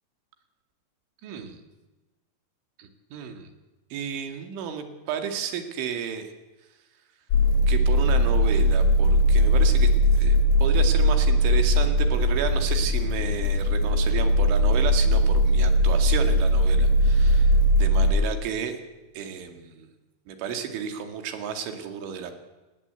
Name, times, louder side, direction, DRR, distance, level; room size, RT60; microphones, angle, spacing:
voice 1, 1.2-1.6 2.8-3.5 3.9-6.3 7.7-17.5 17.8-18.8 19.1-19.9 20.3-22.3, right 7 dB, 75° right, 6 dB, 4.6 m, -32 dB
sound 1, 7.3-18.2, equal, 70° left, 4.4 m, -20 dB
29.0 x 18.5 x 8.3 m, 1.2 s
omnidirectional pair, 5.7 m